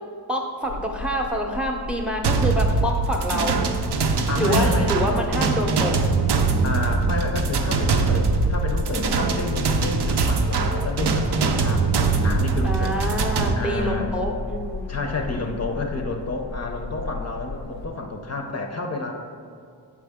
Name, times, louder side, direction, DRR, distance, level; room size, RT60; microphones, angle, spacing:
voice 1, 0.3-3.6 4.4-6.0 12.6-15.0 15.3-15.6, equal, 5° right, 2 dB, 0.6 m, -26 dB
sound 1, 0.6-17.9, left 3 dB, 80° left, 0.6 m, -34 dB
sound 2, 2.2-13.5, right 4 dB, 75° right, 0.5 m, -22 dB
voice 2, 4.3-4.9 6.6-11.9 12.2-13.0 13.6-14.1 14.9-19.2, left 3 dB, 40° left, 2 dB, 0.5 m, -29 dB
6.4 x 4.7 x 3.5 m, 2.4 s
wide cardioid pair, 105°, 40 cm